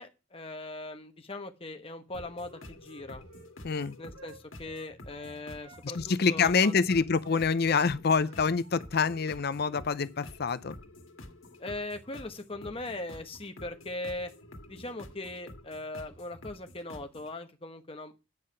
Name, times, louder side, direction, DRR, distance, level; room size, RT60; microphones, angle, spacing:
voice 1, 0.0-3.2 4.0-6.8 11.6-14.3 14.7-18.1, left 2 dB, 30° left, 1.1 m, -40 dB
sound 1, 2.1-17.3, left 1 dB, 90° left, 1.6 m, -49 dB
Wind instrument woodwind instrument, 2.4-5.9 6.2-9.3 9.6-9.8, right 2 dB, 65° right, 1.5 m, -54 dB
voice 2, 3.6-4.0 5.8-10.8, left 5 dB, 50° left, 0.5 m, -26 dB
9.3 x 5.7 x 6.6 m
head